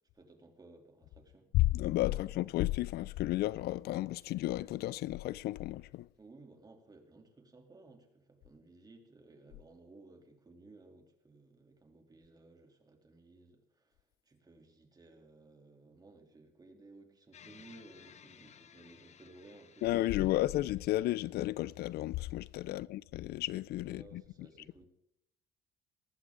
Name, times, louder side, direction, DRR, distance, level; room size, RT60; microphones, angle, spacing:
voice 1, 0.0-1.5 2.1-2.3 6.1-20.6 22.7-22.9 23.8-24.9, right 2 dB, 25° right, 3.2 m, -58 dB
voice 2, 1.5-6.1 19.8-24.5, left 16 dB, 70° left, 0.4 m, -33 dB
sound 1, 17.3-21.7, left 8 dB, 45° left, 1.0 m, -59 dB
19.0 x 15.0 x 3.9 m
cardioid pair, 110°, 17 cm